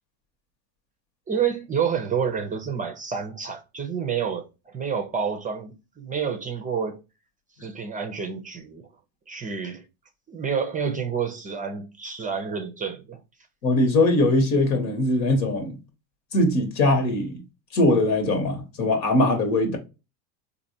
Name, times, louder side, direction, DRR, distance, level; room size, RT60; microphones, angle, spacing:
voice 1, 1.3-7.0 7.6-8.8 9.3-9.9 10.3-13.2, right 6 dB, 20° right, 0.4 m, -29 dB
voice 2, 13.6-15.8 16.3-17.4 17.7-19.8, left 2 dB, 90° left, 1.5 m, -21 dB
4.1 x 2.6 x 2.6 m
supercardioid pair, 100°, 50 cm